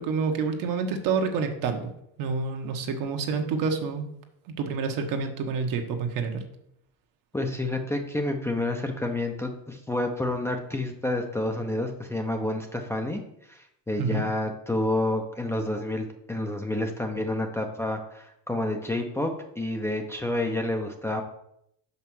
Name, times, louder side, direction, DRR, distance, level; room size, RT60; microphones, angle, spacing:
voice 1, 0.0-1.9 2.2-4.1 4.6-6.4 14.0-14.2, right 5 dB, 55° right, 5 dB, 1.3 m, -28 dB
voice 2, 7.3-13.2 13.5-21.2, left 1 dB, 5° left, 3 dB, 0.7 m, -29 dB
5.7 x 5.6 x 6.2 m, 0.76 s
cardioid pair, 125°, 39 cm